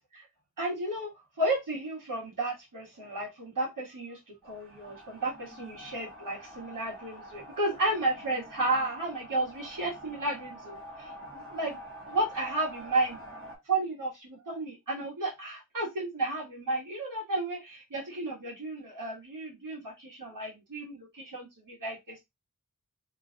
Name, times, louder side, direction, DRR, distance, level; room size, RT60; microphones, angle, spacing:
voice 1, 0.6-1.1 1.4-11.7 12.1-13.2 13.7-22.2, right 2 dB, 80° right, -4 dB, 1.9 m, -33 dB
sound 1, 4.4-13.6, equal, 40° right, 1.4 m, -46 dB
3.3 x 3.1 x 2.5 m, 0.20 s
wide cardioid pair, 85°, 32 cm